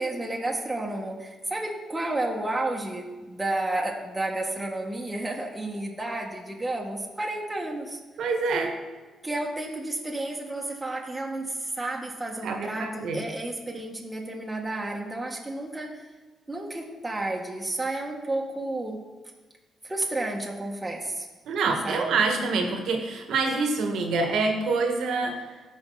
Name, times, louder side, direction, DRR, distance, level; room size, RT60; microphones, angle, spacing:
voice 1, 0.0-8.0 9.2-16.1 16.5-19.0 19.8-21.3 21.8-22.3, right 2 dB, 15° right, -2 dB, 1.7 m, -31 dB
voice 2, 8.2-8.7 12.4-13.2 21.5-25.4, right 3 dB, 75° right, 3 dB, 1.5 m, -26 dB
14.0 x 4.9 x 4.0 m, 1.3 s
supercardioid pair, 55°, 0 cm